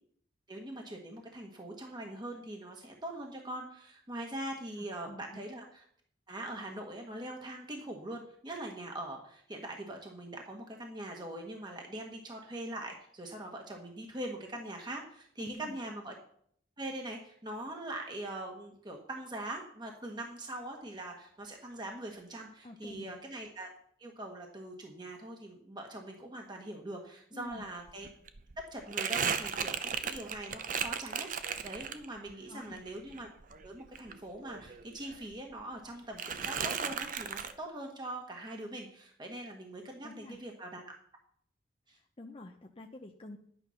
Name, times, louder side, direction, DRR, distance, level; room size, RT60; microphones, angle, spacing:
voice 1, 0.5-5.8 6.3-16.1 16.8-23.7 24.0-28.1 28.7-33.3 33.6-40.9 41.9-42.0, right 1 dB, 25° right, 1 dB, 1.4 m, -42 dB
voice 2, 4.8-5.4 15.4-15.9 22.6-23.1 27.3-27.7 32.5-32.8 40.0-40.4 41.9-43.4, left 2 dB, 30° left, 3 dB, 0.7 m, -48 dB
Crumpling crinkling, 27.5-27.6 27.9-32.3 32.7-34.8 35.1-35.9 36.2-37.5, right 7 dB, 45° right, 0.7 m, -36 dB
11.0 x 9.2 x 5.7 m, 0.65 s
head